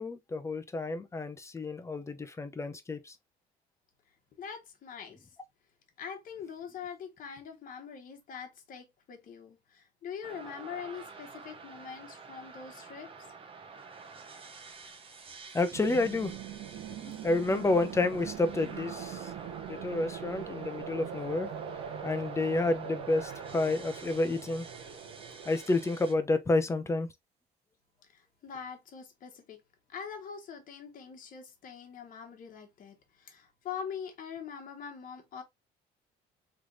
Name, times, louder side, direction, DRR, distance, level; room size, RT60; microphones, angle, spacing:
voice 1, 0.0-3.1 15.5-16.3 17.0-19.3 19.7-21.5 22.0-24.7 25.5-27.1, left 2 dB, 15° left, 0.7 m, -30 dB
voice 2, 4.4-5.2 6.0-13.3 28.1-29.6 29.9-35.4, left 7 dB, 55° left, 1.3 m, -43 dB
sound 1, 10.2-26.1, right 4 dB, 30° right, 0.9 m, -49 dB
sound 2, 15.7-26.2, right 8 dB, 80° right, 0.9 m, -42 dB
3.4 x 3.2 x 2.5 m
cardioid pair, 110°, 17 cm